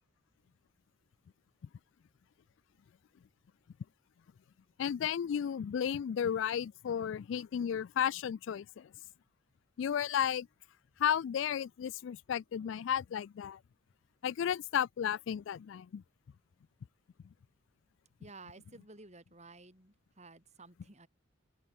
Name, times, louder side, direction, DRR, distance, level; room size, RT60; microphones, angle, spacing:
voice 1, 4.8-8.9 9.8-10.5 11.0-13.6 14.2-16.0, left 8 dB, 65° left, 0.3 m, -33 dB
voice 2, 18.2-21.1, right 3 dB, 35° right, 6.4 m, -54 dB
open air
head